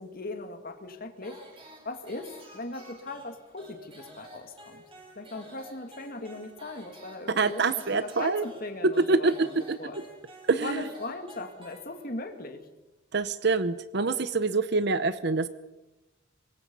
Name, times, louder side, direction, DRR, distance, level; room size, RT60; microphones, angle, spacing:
voice 1, 0.0-1.4 1.8-4.8 5.2-7.6 7.9-9.5 9.8-10.0 10.6-12.6, left 2 dB, 45° left, 5 dB, 2.4 m, -38 dB
sound 1, 1.2-12.3, right 1 dB, 25° right, 6.5 m, -51 dB
voice 2, 7.3-8.5 8.8-9.8 10.5-10.8 13.1-15.5, right 3 dB, 55° right, 13 dB, 0.8 m, -25 dB
25.0 x 21.0 x 5.5 m, 1.0 s
head